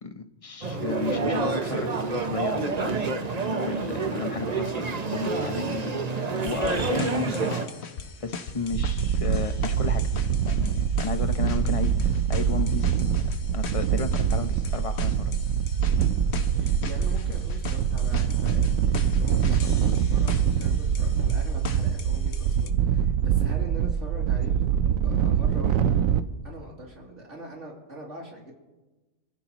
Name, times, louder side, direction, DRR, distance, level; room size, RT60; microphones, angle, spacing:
voice 1, 0.0-4.8 5.1-7.9 8.2-10.1 10.4-13.0 13.5-15.4, left 4 dB, 30° left, 8 dB, 0.9 m, -34 dB
sound 1, 0.6-7.7, right 3 dB, 35° right, 1.0 m, -28 dB
sound 2, 6.4-22.7, left 5 dB, 55° left, 1.1 m, -39 dB
sound 3, 8.7-26.2, right 8 dB, 85° right, 1.1 m, -24 dB
voice 2, 16.5-18.6 18.9-25.9 26.4-28.5, right 1 dB, 60° right, -2 dB, 3.4 m, -42 dB
26.5 x 15.5 x 3.0 m, 1.2 s
omnidirectional pair, 1.4 m